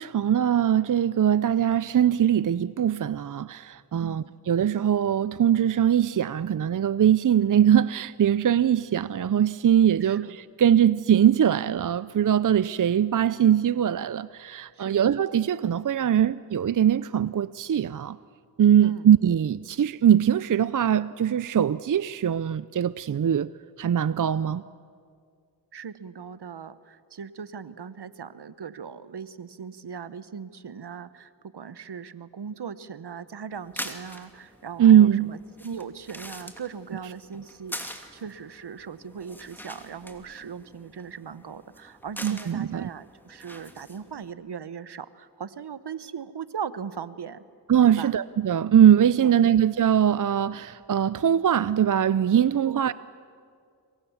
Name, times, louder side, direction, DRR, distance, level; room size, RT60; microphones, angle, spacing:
voice 1, 0.0-18.2 18.6-23.5 23.8-24.6 34.8-35.3 42.2-42.9 47.7-52.9, right 9 dB, 50° right, 0.5 m, -21 dB
voice 2, 4.0-4.4 10.0-10.4 14.7-15.0 18.8-19.1 25.7-47.4 47.8-48.1 49.2-49.4 52.6-52.9, right 7 dB, 70° right, 1.0 m, -39 dB
sound 1, 33.5-44.3, equal, 5° left, 2.6 m, -44 dB
27.5 x 23.5 x 7.2 m
cardioid pair, 45°, 42 cm